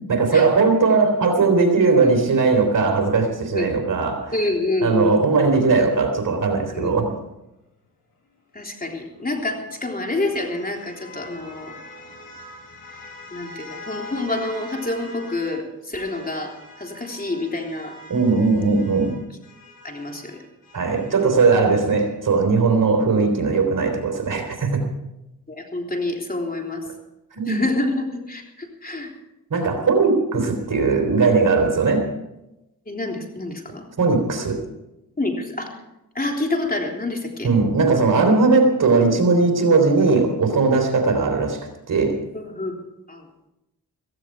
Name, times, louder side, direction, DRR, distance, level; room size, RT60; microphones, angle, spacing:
voice 1, 0.0-4.3 4.8-7.1 18.1-19.2 20.7-24.9 27.3-27.6 29.5-32.1 34.0-34.6 37.4-41.6 41.9-42.2, right 4 dB, 60° right, 4 dB, 3.5 m, -19 dB
voice 2, 4.3-5.2 6.7-7.0 8.5-11.7 13.3-18.0 19.8-20.4 22.6-22.7 25.5-26.8 27.4-29.2 32.9-33.9 35.2-35.8 36.2-37.5 42.3-42.7 43.1-43.3, left 2 dB, 25° left, 1 dB, 3.5 m, -27 dB
sound 1, 9.0-15.6 15.9-21.3, left 1 dB, 60° left, 7.8 m, -43 dB
15.5 x 15.5 x 4.6 m, 0.93 s
cardioid pair, 65°, 36 cm